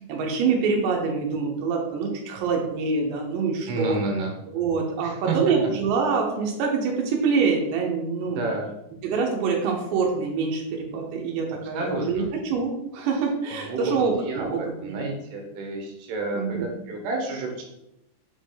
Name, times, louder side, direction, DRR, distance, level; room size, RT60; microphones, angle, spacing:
voice 1, 0.0-4.0 4.5-8.4 9.0-15.0 16.3-16.7, right 5 dB, 90° right, 0 dB, 3.2 m, -25 dB
voice 2, 3.7-4.3 5.0-5.4 8.3-8.7 11.7-12.3 13.5-17.6, right 3 dB, 75° right, 1 dB, 3.4 m, -30 dB
7.5 x 5.1 x 3.9 m, 0.85 s
omnidirectional pair, 4.9 m